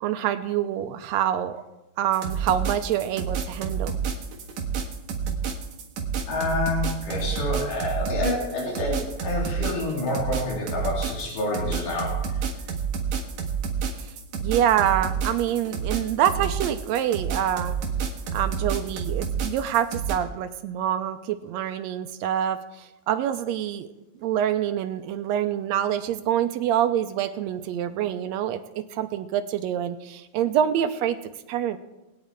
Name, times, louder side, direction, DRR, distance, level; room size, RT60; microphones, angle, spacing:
voice 1, 0.0-1.6 2.0-4.0 14.0-14.1 14.4-17.8 18.3-23.9 24.2-28.6 28.9-31.2 31.5-31.8, right 10 dB, 90° right, 8 dB, 1.5 m, -26 dB
sound 1, 2.1-20.1, right 6 dB, 60° right, 2.6 m, -29 dB
voice 2, 6.3-12.3, left 2 dB, 75° left, -3 dB, 4.5 m, -28 dB
20.5 x 9.1 x 4.5 m, 1.0 s
omnidirectional pair, 3.7 m